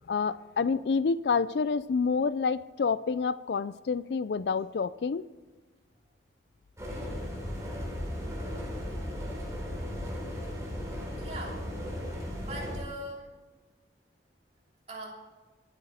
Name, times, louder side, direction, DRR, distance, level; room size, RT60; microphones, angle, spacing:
voice 1, 0.1-5.3, left 5 dB, 65° left, 17 dB, 0.4 m, -28 dB
sound 1, 6.8-12.8, equal, 15° right, 3.4 m, -36 dB
voice 2, 11.2-11.6 12.4-13.3 14.9-15.2, right 1 dB, 35° right, -2 dB, 3.3 m, -40 dB
24.0 x 8.7 x 4.3 m, 1.3 s
head